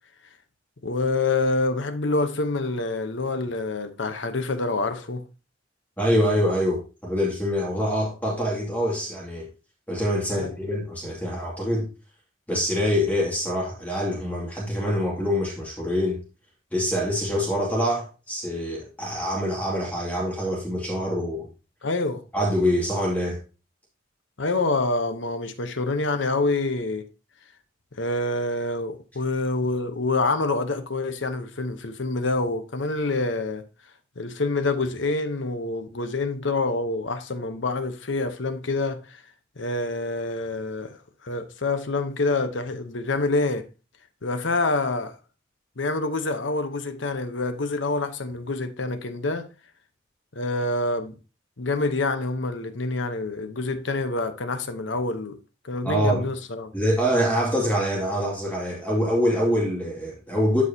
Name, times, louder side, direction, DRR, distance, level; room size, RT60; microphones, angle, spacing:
voice 1, 0.8-5.2 10.4-10.5 21.8-22.2 24.4-27.1 27.9-33.6 34.2-39.2 39.6-43.7 44.2-45.2 45.8-49.5 50.3-51.2 51.6-55.4 55.6-56.7, left 3 dB, 70° left, 1.0 m, -27 dB
voice 2, 6.0-9.5 9.9-11.9 12.5-16.2 16.7-21.4 22.3-23.4 55.8-56.2 56.7-60.6, equal, 10° left, 2.3 m, -25 dB
12.5 x 4.7 x 2.8 m
head